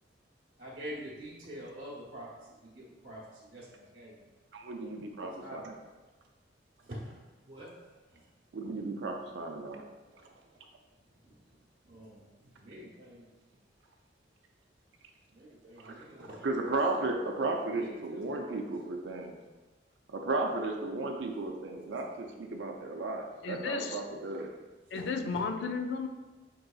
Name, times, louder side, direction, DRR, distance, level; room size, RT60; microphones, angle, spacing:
voice 1, 0.6-2.3 2.6-4.2 5.2-5.7 6.8-7.7 8.1-8.2 11.2-11.3 11.8-13.3 15.3-16.5 17.8-18.7 24.9-25.5, equal, 45° right, -9 dB, 0.9 m, -46 dB
voice 2, 4.5-5.8 8.5-9.8 10.2-10.3 15.8-16.0 16.4-19.4 20.1-24.5, right 2 dB, 70° right, 2 dB, 0.4 m, -34 dB
voice 3, 23.4-24.0 24.9-26.1, left 4 dB, 70° left, 6 dB, 0.4 m, -33 dB
5.3 x 3.9 x 2.3 m, 1.2 s
head